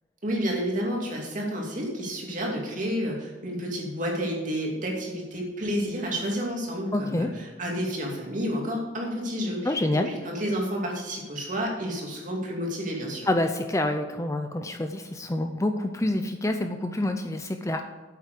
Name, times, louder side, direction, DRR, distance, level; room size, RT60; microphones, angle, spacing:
voice 1, 0.2-13.3, equal, 40° right, -1 dB, 2.6 m, -30 dB
voice 2, 6.9-7.3 9.6-10.1 13.3-17.9, left 1 dB, 15° left, 6 dB, 0.5 m, -27 dB
8.4 x 8.2 x 6.7 m, 1.2 s
head